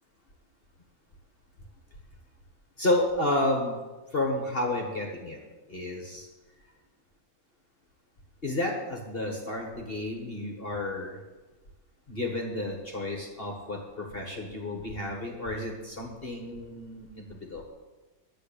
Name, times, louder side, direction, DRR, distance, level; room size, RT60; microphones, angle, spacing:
voice 1, 2.8-3.8 4.1-5.4 5.7-6.3 8.4-11.2 12.1-17.7, left 1 dB, 30° left, 1 dB, 1.5 m, -31 dB
11.0 x 7.2 x 8.6 m, 1.2 s
omnidirectional pair, 2.4 m